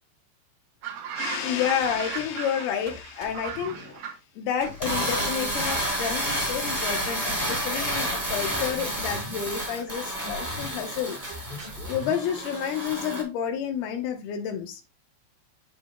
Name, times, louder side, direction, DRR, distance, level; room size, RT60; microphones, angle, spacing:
sound 1, 0.8-4.2, right 8 dB, 60° right, 2.4 m, -37 dB
voice 1, 1.2-3.9 4.4-11.2 11.9-14.8, left 8 dB, 85° left, 2.2 m, -30 dB
sound 2, 1.8-2.4 2.9-4.0 4.6-5.1 5.6-7.1 7.4-13.1, equal, 10° right, 4.7 m, -42 dB
sound 3, 4.7-13.2, right 1 dB, 5° left, 1.9 m, -30 dB
8.8 x 7.8 x 2.2 m
omnidirectional pair, 5.9 m